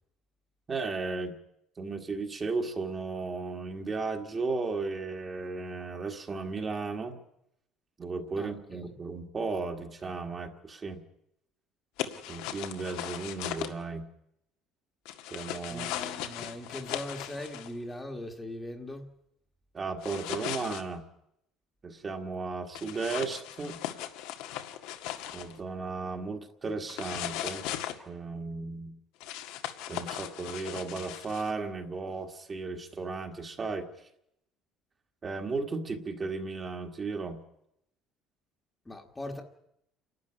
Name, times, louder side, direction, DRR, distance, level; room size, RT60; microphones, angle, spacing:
voice 1, 0.7-1.4 1.8-7.2 8.0-11.0 12.3-14.1 15.3-15.9 19.7-21.1 21.8-23.8 25.3-27.6 28.0-28.9 29.9-34.1 35.2-37.4, right 4 dB, 20° right, 4 dB, 1.6 m, -35 dB
voice 2, 8.4-8.8 15.7-19.1 38.8-39.4, left 1 dB, 10° left, 3 dB, 1.5 m, -40 dB
sound 1, 12.0-13.7 15.1-17.7 20.0-20.8 22.7-25.6 26.9-28.0 29.2-31.5, left 12 dB, 85° left, 1.9 m, -38 dB
29.0 x 12.5 x 9.9 m, 0.79 s
cardioid pair, 175°, 0 cm